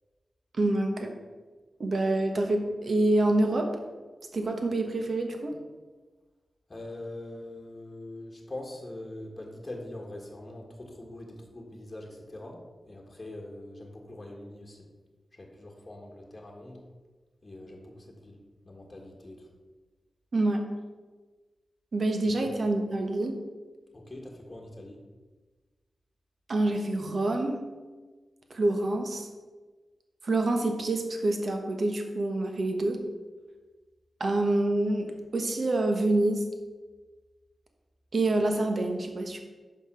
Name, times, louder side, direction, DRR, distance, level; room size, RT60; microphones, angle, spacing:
voice 1, 0.6-1.1 1.8-3.7 4.3-5.6 20.3-20.6 21.9-23.4 26.5-27.6 28.5-29.3 30.2-33.0 34.2-36.4 38.1-39.4, right 2 dB, 60° right, 4 dB, 1.1 m, -27 dB
voice 2, 6.7-14.9 15.3-16.9 17.4-18.4 18.6-19.5 22.3-22.5 23.9-25.0, left 1 dB, 30° left, 0 dB, 1.5 m, -43 dB
5.7 x 5.4 x 5.6 m, 1.3 s
cardioid pair, 65°, 0 cm